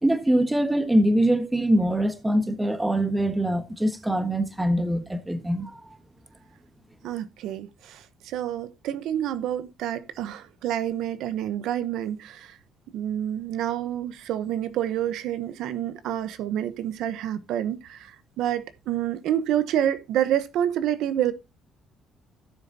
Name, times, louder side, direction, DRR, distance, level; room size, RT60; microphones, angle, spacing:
voice 1, 0.0-5.8, right 1 dB, 10° right, 1.4 m, -23 dB
voice 2, 7.0-12.6 12.9-21.3, right 11 dB, 80° right, 0.9 m, -28 dB
16.5 x 6.8 x 2.7 m
cardioid pair, 130°, 0 cm